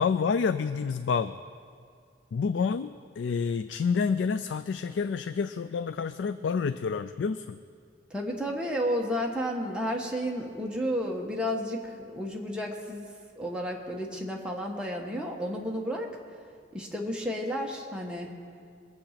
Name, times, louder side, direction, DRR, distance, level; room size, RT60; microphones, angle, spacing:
voice 1, 0.0-1.4 2.3-2.9 3.2-7.6, left 5 dB, 75° left, 12 dB, 0.4 m, -28 dB
voice 2, 8.1-13.1 13.4-16.1 16.7-18.3, equal, 5° right, -1 dB, 1.4 m, -32 dB
21.0 x 7.8 x 5.8 m, 2.2 s
head